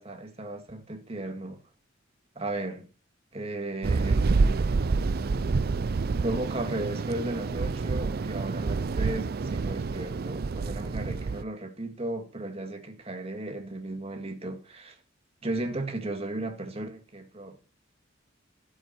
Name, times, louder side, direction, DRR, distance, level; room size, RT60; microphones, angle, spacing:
voice 1, 0.0-1.6 2.4-2.9 3.3-4.7 6.2-15.0 15.4-17.6, right 2 dB, 30° right, 2.2 m, -35 dB
sound 1, 3.8-11.4, right 4 dB, 50° right, 0.5 m, -28 dB
15.0 x 8.0 x 4.4 m
head